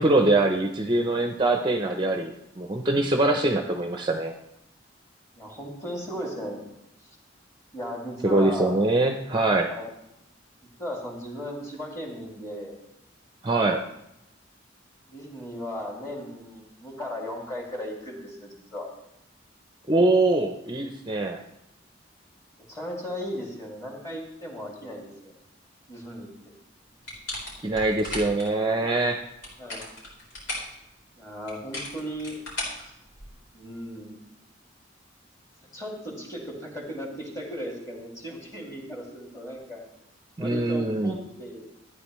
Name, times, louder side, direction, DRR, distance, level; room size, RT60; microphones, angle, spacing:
voice 1, 0.0-4.3 8.2-9.7 13.4-13.8 19.9-21.4 27.6-29.2 40.4-41.1, right 2 dB, 25° right, 4 dB, 0.6 m, -23 dB
voice 2, 5.3-6.7 7.7-8.8 9.7-9.9 10.8-12.8 15.1-18.9 22.7-25.3 25.9-26.5 29.6-29.9 31.2-32.4 33.5-34.1 35.7-39.8 40.4-41.7, equal, 15° left, -1 dB, 2.3 m, -36 dB
sound 1, 27.0-28.5 29.3-30.7 31.5-33.5, left 1 dB, 80° left, 4.6 m, -36 dB
13.5 x 9.5 x 3.1 m, 0.82 s
head